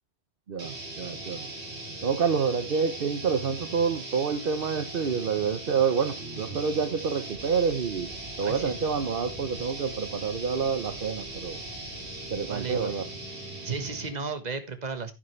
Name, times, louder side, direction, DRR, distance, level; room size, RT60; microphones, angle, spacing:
voice 1, 0.5-1.5 2.0-8.1 8.4-11.6 12.3-13.1, right 6 dB, 60° right, 9 dB, 1.1 m, -28 dB
sound 1, 0.6-14.3, right 2 dB, 90° right, 2.8 m, -39 dB
sound 2, 7.3-13.0, right 2 dB, 40° left, 5.5 m, -50 dB
voice 2, 8.4-8.7 12.5-12.9 13.6-15.1, right 5 dB, 40° right, 9 dB, 1.5 m, -34 dB
11.0 x 9.3 x 3.2 m, 0.23 s
omnidirectional pair, 1.1 m